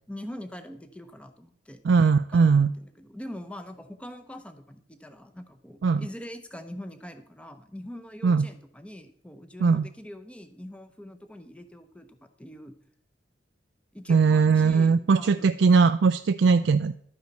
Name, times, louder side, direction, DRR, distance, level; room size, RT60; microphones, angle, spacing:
voice 1, 0.1-1.8 2.3-12.7 13.9-15.5, left 1 dB, 5° left, 8 dB, 0.8 m, -43 dB
voice 2, 1.8-2.7 5.8-6.0 8.2-8.5 9.6-9.9 14.1-16.9, right 5 dB, 65° right, 8 dB, 0.4 m, -20 dB
12.0 x 9.4 x 4.1 m, 0.65 s
head